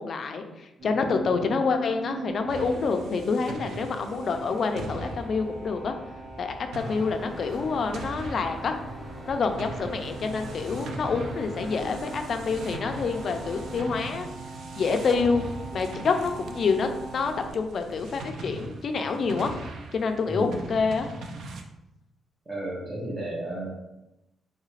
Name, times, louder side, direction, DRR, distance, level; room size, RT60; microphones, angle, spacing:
voice 1, 0.0-5.9 6.4-8.8 9.3-14.3 14.8-15.4 15.7-19.5 19.9-21.1, left 4 dB, 45° left, 6 dB, 0.3 m, -27 dB
sound 1, 0.8-17.5, right 3 dB, 55° right, 1.1 m, -42 dB
sound 2, 2.5-21.6, right 2 dB, 70° right, 0.4 m, -41 dB
sound 3, 6.8-14.2, equal, 5° left, 1.1 m, -42 dB
voice 2, 20.3-20.6 22.5-23.7, right 1 dB, 30° right, -7 dB, 0.6 m, -33 dB
3.1 x 2.4 x 3.1 m, 0.93 s
cardioid pair, 150°, 0 cm